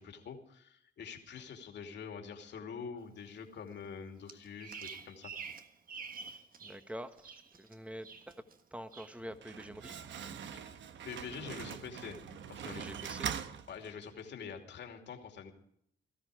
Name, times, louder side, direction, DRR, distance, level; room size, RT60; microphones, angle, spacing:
voice 1, 0.0-5.3 10.5-10.8 11.1-12.2 12.5-12.9 13.7-15.5, left 6 dB, 60° left, 4 dB, 2.7 m, -46 dB
Bird vocalization bird call bird song, 4.3-6.8 7.1-7.7 8.0-8.6 8.9-9.2, right 5 dB, 45° right, 1.5 m, -47 dB
voice 2, 6.6-8.4 8.7-10.0 11.4-11.5 12.2-13.3, equal, 5° right, 9 dB, 1.4 m, -47 dB
Slam, 9.2-14.3, right 8 dB, 70° right, 1.2 m, -43 dB
18.0 x 13.5 x 4.9 m, 0.70 s
cardioid pair, 90°, 20 cm